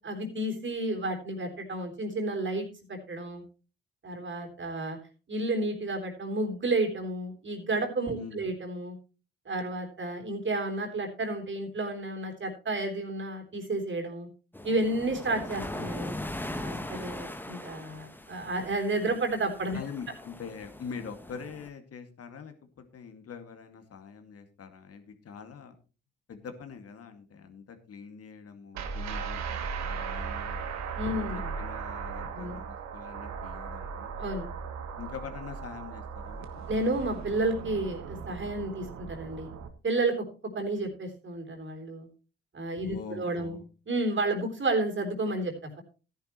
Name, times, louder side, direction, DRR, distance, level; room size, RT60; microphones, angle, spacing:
voice 1, 0.0-3.4 4.0-5.0 5.3-9.0 9.5-14.3 14.6-16.2 16.6-19.8 30.9-31.5 32.3-32.6 34.2-34.5 36.7-39.5 39.8-40.3 40.5-42.1 42.5-43.6 43.9-45.8, right 2 dB, 40° right, 3 dB, 3.7 m, -31 dB
voice 2, 8.2-8.5 15.3-15.4 19.7-25.8 26.3-30.6 31.1-34.1 35.0-36.6 42.8-43.7, left 6 dB, 50° left, 7 dB, 2.2 m, -44 dB
sound 1, 14.5-21.7, left 1 dB, 5° left, 1.4 m, -40 dB
sound 2, 28.7-39.7, right 6 dB, 65° right, 1.5 m, -37 dB
14.0 x 10.5 x 3.1 m, 0.34 s
hypercardioid pair, 50°, 30 cm